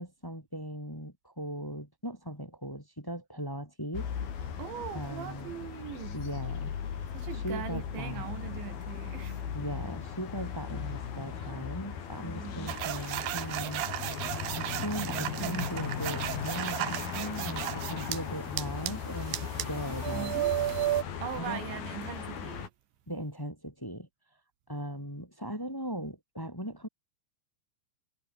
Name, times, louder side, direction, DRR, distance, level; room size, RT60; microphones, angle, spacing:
voice 1, 0.0-4.1 4.9-5.5 6.1-6.7 7.3-8.3 9.5-13.8 14.6-20.3 21.4-21.6 23.1-24.1 24.7-26.9, equal, 5° left, 4.6 m, -38 dB
sound 1, 3.9-22.7, left 7 dB, 50° left, 4.8 m, -37 dB
voice 2, 4.5-6.2 7.1-9.6 12.2-12.8 15.0-16.0 20.1-20.8 21.2-22.7, right 10 dB, 70° right, 4.2 m, -41 dB
sound 2, 12.7-18.2 18.6-21.0, right 14 dB, 85° right, 2.0 m, -34 dB
omnidirectional pair, 5.8 m